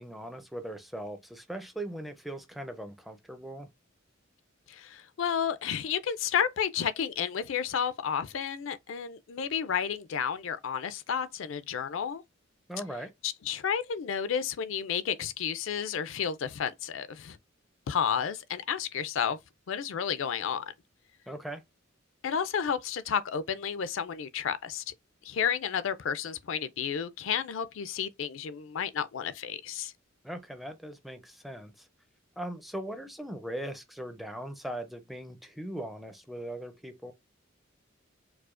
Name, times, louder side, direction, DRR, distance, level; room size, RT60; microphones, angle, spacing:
voice 1, 0.0-3.7 12.7-13.1 21.3-21.6 30.2-31.9 32.4-37.1, right 1 dB, ahead, 0.4 m, -39 dB
voice 2, 4.7-12.2 13.2-17.4 17.9-19.4 19.7-20.6 22.2-24.9 25.2-29.9, left 7 dB, 65° left, 0.4 m, -31 dB
4.7 x 2.0 x 2.5 m
head